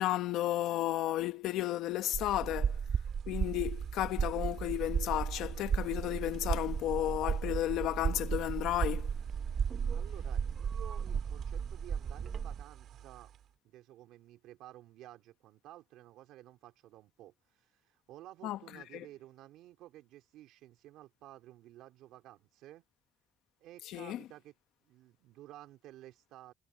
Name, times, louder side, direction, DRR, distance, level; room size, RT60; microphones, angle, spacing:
voice 1, 0.0-2.8 3.3-9.1 18.4-18.6 18.9-19.0 23.9-24.2, left 14 dB, 75° left, 1.1 m, -33 dB
sound 1, 2.0-13.6, right 10 dB, 50° right, 4.5 m, -54 dB
sound 2, 2.1-12.6, right 7 dB, 35° right, 0.7 m, -35 dB
voice 2, 9.9-13.3 13.6-22.8 23.6-24.5 24.8-26.5, right 14 dB, 80° right, 4.0 m, -53 dB
cardioid pair, 165°, 0 cm